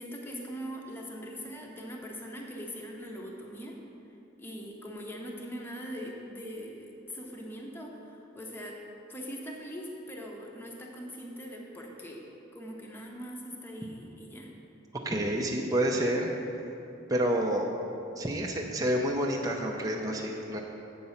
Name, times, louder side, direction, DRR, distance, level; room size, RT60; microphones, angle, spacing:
voice 1, 0.0-3.8 4.4-8.8 9.1-12.2 12.5-14.5, equal, 10° left, -1 dB, 0.8 m, -41 dB
voice 2, 15.0-16.3 17.1-17.7 18.2-20.6, right 1 dB, 20° right, 0 dB, 0.6 m, -28 dB
7.7 x 5.3 x 7.1 m, 2.9 s
head